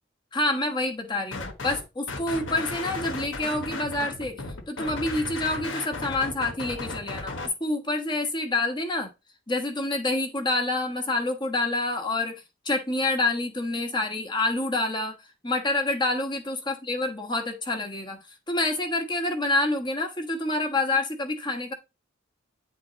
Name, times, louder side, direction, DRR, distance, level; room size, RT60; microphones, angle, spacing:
voice 1, 0.3-9.1 9.5-15.1 15.4-18.2 18.5-21.7, left 2 dB, 25° left, 3 dB, 1.2 m, -27 dB
sound 1, 1.3-1.8 2.1-7.5, left 3 dB, 75° left, 1.2 m, -35 dB
9.5 x 3.6 x 4.0 m, 0.26 s
head